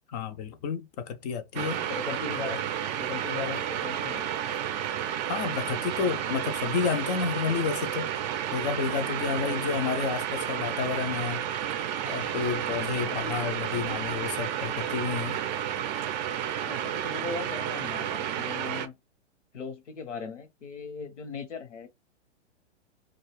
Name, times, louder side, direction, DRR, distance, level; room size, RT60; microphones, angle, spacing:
voice 1, 0.1-1.9 5.3-8.1 8.5-11.4 12.0-15.4, left 6 dB, 35° left, 0.4 m, -30 dB
sound 1, 1.5-18.9, right 10 dB, 40° right, 0.5 m, -31 dB
voice 2, 1.9-2.6 3.0-4.4 9.5-9.6 10.6-10.8 12.0-12.2 13.2-13.4 16.7-18.9 19.5-21.9, left 5 dB, 80° left, 0.9 m, -38 dB
2.3 x 2.3 x 3.1 m
hypercardioid pair, 115°, 35 cm